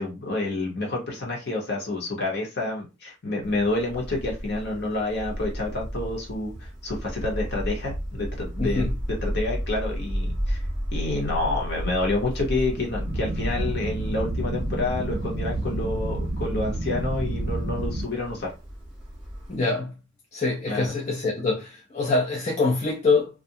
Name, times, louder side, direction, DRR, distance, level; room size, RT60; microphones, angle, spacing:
voice 1, 0.0-10.6 10.9-18.5 20.7-21.0, left 2 dB, 55° left, 1.0 m, -29 dB
sound 1, 3.4-19.6, equal, 5° right, 0.7 m, -33 dB
voice 2, 8.6-8.9 19.5-19.9 20.3-23.3, left 3 dB, 35° left, 0.5 m, -24 dB
sound 2, 13.1-18.0, right 1 dB, 55° right, 0.5 m, -29 dB
2.4 x 2.2 x 2.7 m
head